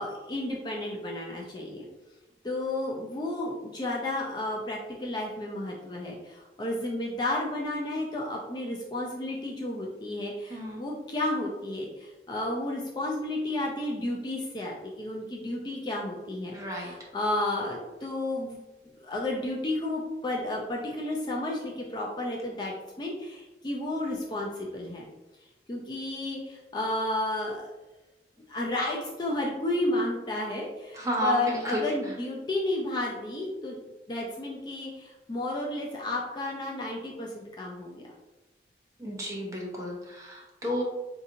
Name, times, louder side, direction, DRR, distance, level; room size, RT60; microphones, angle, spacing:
voice 1, 0.0-1.9 2.4-18.6 19.0-25.0 25.7-27.7 28.5-33.8 34.1-38.1, left 1 dB, 25° left, -2 dB, 0.4 m, -32 dB
voice 2, 10.5-10.8 16.5-16.9 31.0-31.4 31.6-31.8 39.0-40.8, equal, 20° right, -2 dB, 0.6 m, -31 dB
3.8 x 2.8 x 2.6 m, 1.1 s
head